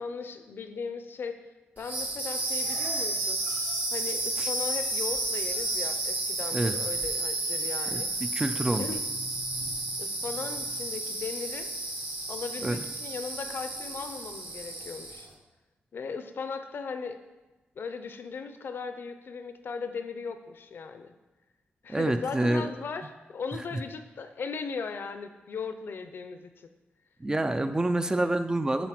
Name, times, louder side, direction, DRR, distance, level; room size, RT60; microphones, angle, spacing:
voice 1, 0.0-1.4 1.8-3.4 3.9-8.1 8.8-9.0 10.0-11.7 12.3-15.3 15.9-17.2 17.8-21.1 21.8-26.7, left 5 dB, 65° left, 8 dB, 0.7 m, -37 dB
sound 1, 1.8-15.3, right 2 dB, 45° right, 1.5 m, -32 dB
voice 2, 7.9-8.9 12.6-12.8 21.9-22.7 23.7-23.8 27.2-28.9, right 1 dB, 20° right, 9 dB, 0.6 m, -27 dB
10.5 x 4.0 x 6.0 m, 1.1 s
wide cardioid pair, 105°, 4 cm